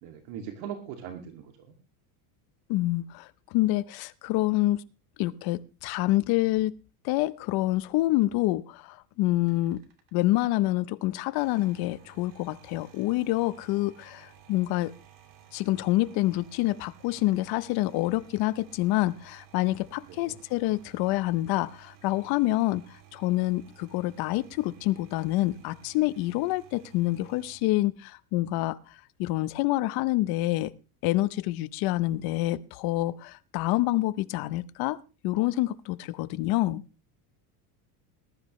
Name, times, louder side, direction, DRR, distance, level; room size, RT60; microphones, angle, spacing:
voice 1, 0.0-1.7 20.1-20.4, right 8 dB, 65° right, 2.5 m, -40 dB
voice 2, 2.7-4.8 5.2-6.7 7.0-9.8 10.1-14.9 15.5-30.7 31.0-36.8, left 17 dB, 50° left, 0.8 m, -27 dB
sound 1, 9.4-10.6 11.2-27.6, right 10 dB, 45° right, 2.9 m, -55 dB
20.0 x 12.0 x 3.2 m
cardioid pair, 155°, 47 cm